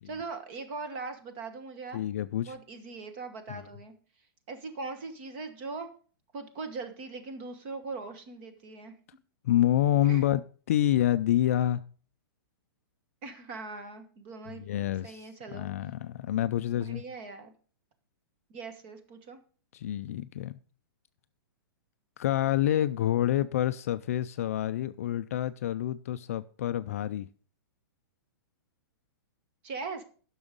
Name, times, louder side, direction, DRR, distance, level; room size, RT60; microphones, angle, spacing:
voice 1, 0.0-2.1 2.4-3.9 4.5-5.9 6.3-8.9 10.0-10.2 13.2-14.7 15.0-15.7 16.7-17.5 18.5-19.4 29.6-30.0, right 4 dB, 30° right, 1.3 m, -40 dB
voice 2, 1.9-2.5 3.5-3.6 9.4-10.4 10.7-11.8 14.5-17.0 19.7-20.5 22.2-27.3, left 12 dB, 40° left, 0.4 m, -27 dB
11.0 x 6.3 x 5.1 m
hypercardioid pair, 175°, 12 cm